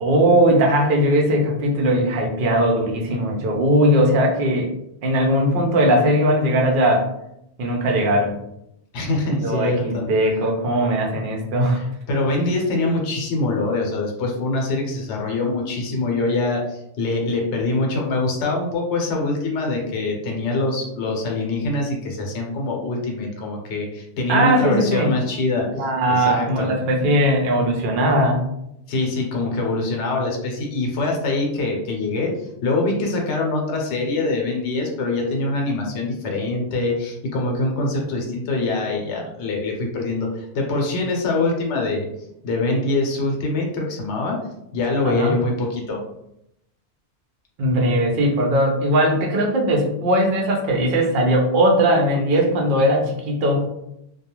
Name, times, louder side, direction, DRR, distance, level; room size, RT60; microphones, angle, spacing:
voice 1, 0.0-4.7 5.0-7.1 7.6-8.3 9.4-11.8 24.3-25.1 25.7-28.4 45.0-45.3 47.6-53.6, right 1 dB, 55° right, 1 dB, 0.7 m, -19 dB
voice 2, 8.9-10.0 11.7-25.7 26.1-26.7 28.9-32.3 32.6-42.1 42.4-44.4 44.7-46.0, left 2 dB, 75° left, 0 dB, 0.9 m, -24 dB
2.3 x 2.2 x 2.9 m, 0.81 s
omnidirectional pair, 1.2 m